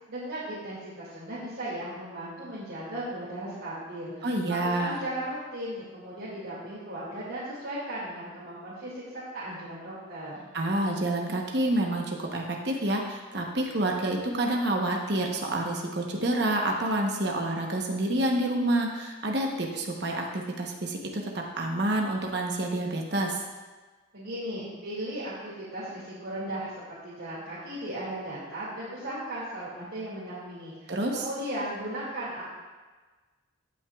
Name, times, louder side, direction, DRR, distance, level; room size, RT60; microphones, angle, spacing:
voice 1, 0.1-10.5 24.1-32.4, right 1 dB, 75° right, -10 dB, 2.3 m, -36 dB
voice 2, 4.2-5.0 10.5-23.4 30.9-31.3, right 1 dB, 55° right, 0 dB, 1.0 m, -28 dB
16.0 x 5.9 x 2.4 m, 1.3 s
head